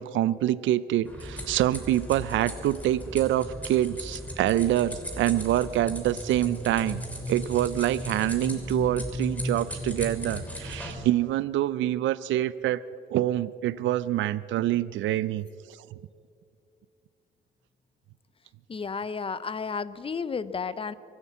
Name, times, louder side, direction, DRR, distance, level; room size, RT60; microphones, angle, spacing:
voice 1, 0.0-7.0 7.3-12.8 13.1-15.4, right 13 dB, 75° right, 17 dB, 0.5 m, -26 dB
sound 1, 1.0-10.9, left 1 dB, 5° left, 3.2 m, -36 dB
voice 2, 18.7-20.9, left 5 dB, 30° left, 15 dB, 0.7 m, -32 dB
23.5 x 8.2 x 7.4 m, 2.4 s
cardioid pair, 90°, 20 cm